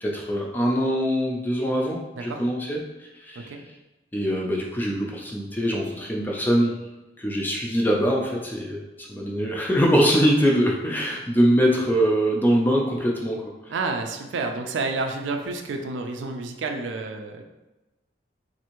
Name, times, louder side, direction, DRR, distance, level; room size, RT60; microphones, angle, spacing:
voice 1, 0.0-2.8 3.2-3.5 4.1-6.7 7.2-13.5, equal, 10° left, -1 dB, 0.3 m, -23 dB
voice 2, 13.7-17.4, right 3 dB, 90° right, 4 dB, 0.4 m, -30 dB
3.2 x 2.6 x 2.9 m, 1.1 s
head